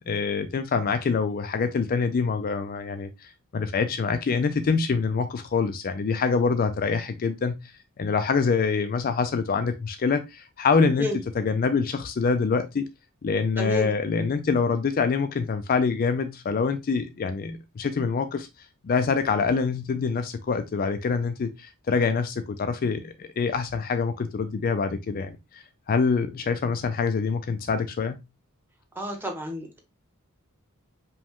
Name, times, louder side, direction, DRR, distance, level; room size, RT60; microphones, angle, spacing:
voice 1, 0.1-11.1 11.3-12.9 13.2-18.5 18.8-28.2, left 5 dB, 45° left, 0.4 m, -25 dB
voice 2, 13.6-13.9 28.9-29.8, equal, 10° right, 1.0 m, -30 dB
5.0 x 2.2 x 3.6 m
head